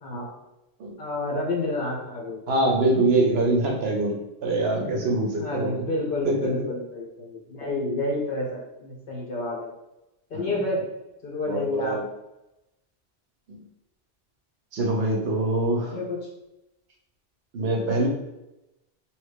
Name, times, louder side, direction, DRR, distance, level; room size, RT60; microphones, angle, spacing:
voice 1, 1.0-2.4 5.4-9.7 10.3-10.8 11.2-12.0 15.7-16.3, left 2 dB, 55° left, -1 dB, 1.0 m, -29 dB
voice 2, 2.5-5.8 6.2-6.5 10.3-10.5 11.5-12.0 13.5-13.6 14.7-16.0 17.5-18.1, right 2 dB, 75° right, 1 dB, 0.9 m, -24 dB
3.0 x 2.4 x 3.5 m, 0.92 s
omnidirectional pair, 1.1 m